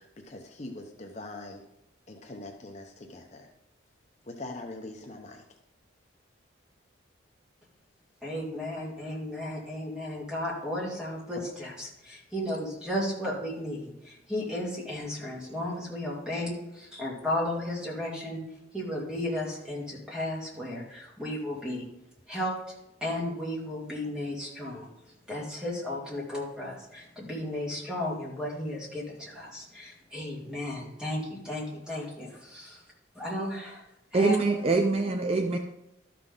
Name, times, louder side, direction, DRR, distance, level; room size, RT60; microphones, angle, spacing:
voice 1, 0.0-1.6 2.1-3.5 4.3-5.4, left 2 dB, 35° left, 3 dB, 0.8 m, -42 dB
voice 2, 8.2-18.4 18.7-21.8 22.3-22.6 23.0-24.9 25.3-32.8 33.2-33.8 34.1-34.4, left 1 dB, 5° right, -4 dB, 2.3 m, -34 dB
voice 3, 34.1-35.6, right 3 dB, 30° right, 4 dB, 0.5 m, -24 dB
12.5 x 5.9 x 3.8 m, 0.84 s
head